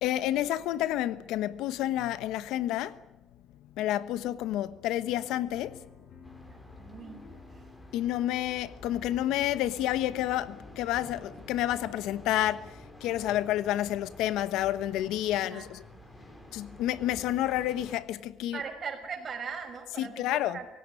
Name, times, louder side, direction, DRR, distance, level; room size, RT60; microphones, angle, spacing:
voice 1, 0.0-3.0 3.8-5.9 7.9-15.8 16.5-18.6 20.0-20.6, left 13 dB, 85° left, 1.1 m, -29 dB
sound 1, 5.1-18.6, left 5 dB, 50° left, 5.0 m, -56 dB
sound 2, 6.2-18.0, equal, 10° left, 5.2 m, -50 dB
voice 2, 6.8-7.7 15.5-15.7 18.5-20.7, right 6 dB, 40° right, 5.6 m, -39 dB
27.0 x 17.0 x 9.8 m
cardioid pair, 135°, 0 cm